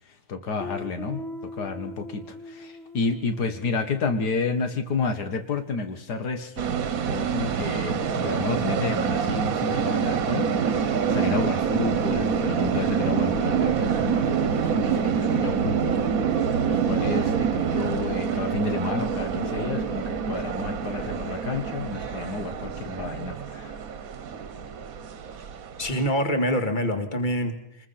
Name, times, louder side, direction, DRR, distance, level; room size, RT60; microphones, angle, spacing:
voice 1, 0.3-1.2 1.6-6.7 7.1-10.5 10.8-16.0 16.6-23.8, left 4 dB, 85° left, 7 dB, 2.0 m, -30 dB
Guitar, 0.6-5.3, left 1 dB, ahead, 1.0 m, -41 dB
sound 1, 6.6-26.1, right 7 dB, 60° right, 1.5 m, -26 dB
voice 2, 25.8-27.9, equal, 30° left, 6 dB, 2.3 m, -25 dB
24.0 x 21.0 x 5.8 m, 0.72 s
omnidirectional pair, 1.7 m